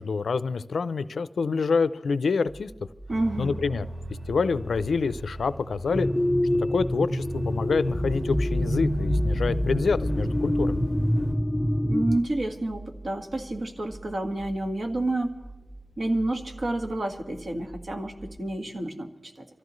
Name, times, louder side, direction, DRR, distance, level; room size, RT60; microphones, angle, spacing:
voice 1, 0.0-2.7 3.4-6.1 6.5-10.8, left 4 dB, 85° left, 14 dB, 0.5 m, -27 dB
sound 1, 2.5-18.4, right 1 dB, 20° right, 5.9 m, -46 dB
voice 2, 3.1-3.5 11.8-15.3 16.0-19.5, right 2 dB, 55° right, 3 dB, 1.8 m, -29 dB
sound 2, 3.1-11.3, equal, 75° right, 3.7 m, -40 dB
sound 3, 5.9-12.2, equal, 5° left, 0.5 m, -26 dB
25.0 x 14.5 x 3.2 m, 1.2 s
wide cardioid pair, 125°, 0 cm